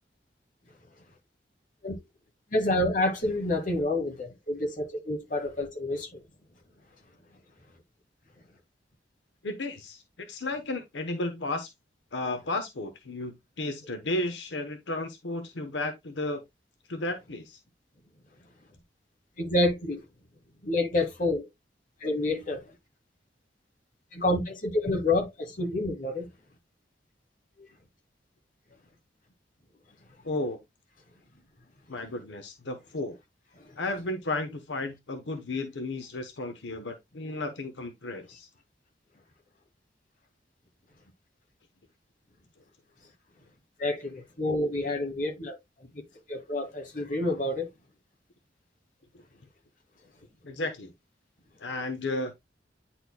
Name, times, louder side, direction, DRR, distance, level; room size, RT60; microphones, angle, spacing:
voice 1, 2.5-6.1 19.4-20.0 20.6-21.5 22.0-22.7 24.1-26.3 27.6-27.7 33.6-33.7 43.8-45.6 45.9-46.0 46.3-47.7, left 2 dB, 50° left, 1.9 m, -28 dB
voice 2, 9.4-11.7 12.1-16.4 16.9-17.6 30.2-30.6 31.9-33.2 33.8-38.5 49.1-49.2 50.4-50.9 51.6-52.3, left 2 dB, 85° left, 0.9 m, -33 dB
9.8 x 4.3 x 2.2 m
head